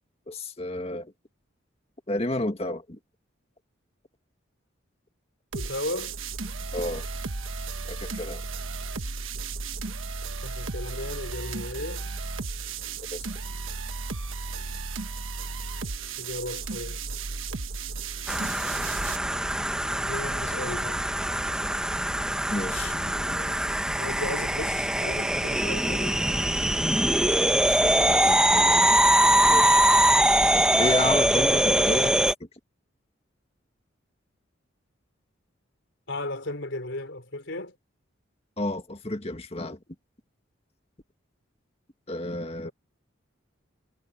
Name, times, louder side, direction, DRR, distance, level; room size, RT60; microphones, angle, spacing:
voice 1, 0.3-1.1 2.1-3.0 6.7-7.1 7.9-8.4 13.1-13.2 22.5-23.6 27.6-29.0 29.4-29.8 30.5-32.5 38.6-39.8 42.1-42.7, left 1 dB, 30° left, 1.9 m, -31 dB
voice 2, 5.5-6.2 10.4-12.1 16.2-17.0 19.9-21.1 24.0-26.3 36.1-37.8 42.6-42.7, left 2 dB, 70° left, 4.0 m, -35 dB
Normie Dubstep, 5.5-19.2, right 4 dB, 90° right, 1.3 m, -34 dB
sound 1, 18.3-32.3, right 1 dB, 5° right, 0.8 m, -23 dB
head